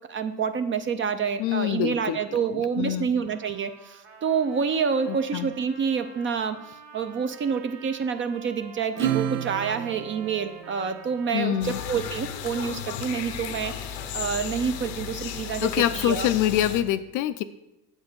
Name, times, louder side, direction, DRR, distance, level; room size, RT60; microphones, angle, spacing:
voice 1, 0.1-16.3, right 6 dB, 25° right, 10 dB, 0.4 m, -28 dB
voice 2, 1.4-2.2 2.5-3.1 5.1-5.5 11.3-11.8 15.6-17.4, left 12 dB, 40° left, 12 dB, 0.4 m, -25 dB
Trumpet, 3.2-15.7, right 6 dB, 50° right, 1.5 m, -49 dB
Acoustic guitar / Strum, 9.0-11.9, right 11 dB, 80° right, 0.8 m, -32 dB
sound 1, 11.6-16.8, left 10 dB, 75° left, 0.8 m, -35 dB
7.8 x 4.5 x 6.8 m, 0.91 s
hypercardioid pair, 90°, 49 cm